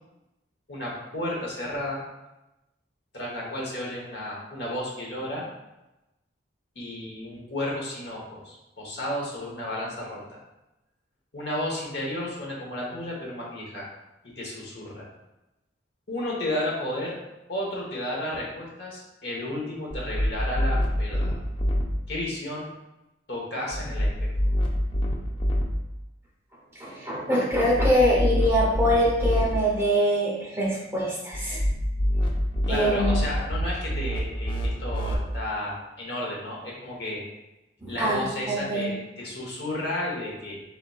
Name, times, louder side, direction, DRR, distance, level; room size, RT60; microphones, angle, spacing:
voice 1, 0.7-2.0 3.1-5.4 6.7-10.4 11.3-13.9 14.4-15.1 16.1-17.1 17.5-21.4 22.1-22.7 23.3-24.3 32.7-37.2 37.9-40.6, left 1 dB, 60° left, -3 dB, 1.1 m, -32 dB
sound 1, 19.9-21.8 23.7-25.6 27.5-29.4 31.3-35.1, equal, 25° left, 0.5 m, -26 dB
voice 2, 26.8-31.6 32.7-33.2 37.8-38.9, equal, 15° right, -5 dB, 0.8 m, -24 dB
4.1 x 3.9 x 2.3 m, 0.97 s
head